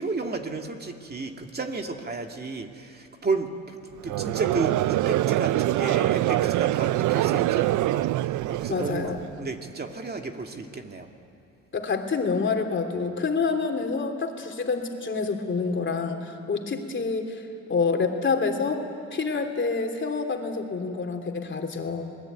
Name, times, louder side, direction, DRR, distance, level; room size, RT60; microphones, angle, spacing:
voice 1, 0.0-11.1, right 3 dB, 30° right, 4 dB, 2.5 m, -32 dB
Conversation / Crowd, 4.0-9.3, right 16 dB, 80° right, 0.5 m, -24 dB
voice 2, 8.7-9.2 11.7-17.4 17.7-18.8 19.1-22.1, left 4 dB, 40° left, 4 dB, 3.2 m, -27 dB
26.5 x 20.5 x 9.4 m, 2.8 s
cardioid pair, 90°, 30 cm